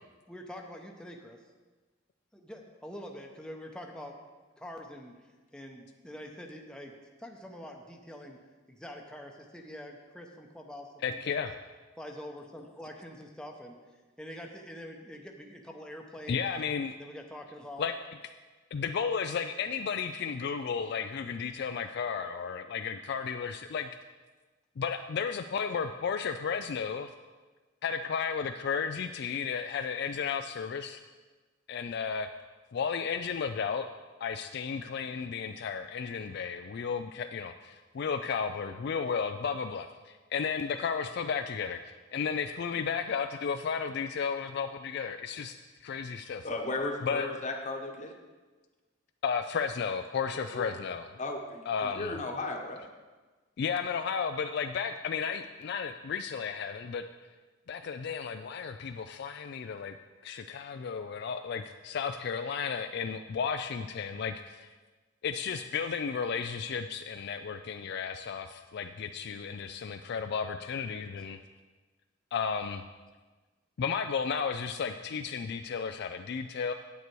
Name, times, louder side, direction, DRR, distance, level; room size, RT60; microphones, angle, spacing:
voice 1, 0.3-1.4 2.3-4.2 4.6-5.1 5.5-6.9 7.2-8.4 8.7-11.4 12.0-13.8 14.2-16.5 17.0-17.9, left 1 dB, 5° left, 1 dB, 0.8 m, -45 dB
voice 2, 11.0-11.5 16.3-17.0 17.8-18.0 18.7-23.9 24.8-27.1 27.8-31.0 31.7-32.3 32.7-33.9 34.2-45.6 45.8-46.5 47.0-47.3 49.2-51.1 51.7-52.1 53.6-57.0 57.7-60.0 60.2-64.7 65.2-71.4 72.3-72.8 73.8-76.7, left 6 dB, 60° left, 7 dB, 0.4 m, -33 dB
voice 3, 46.4-48.1 50.3-50.7 51.2-52.8, left 2 dB, 40° left, 3 dB, 1.1 m, -35 dB
9.4 x 8.2 x 4.6 m, 1.3 s
head